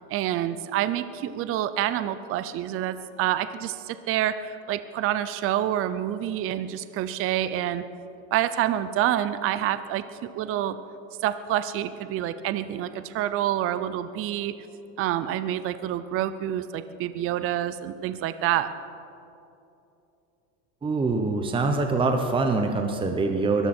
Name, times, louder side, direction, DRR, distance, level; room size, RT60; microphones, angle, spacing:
voice 1, 0.1-7.8 8.3-10.8 11.2-14.5 15.0-18.7, right 12 dB, 35° right, 12 dB, 0.6 m, -27 dB
voice 2, 20.8-23.7, right 3 dB, 15° right, 5 dB, 1.0 m, -24 dB
23.0 x 14.0 x 4.5 m, 2.7 s
supercardioid pair, 135°, 36 cm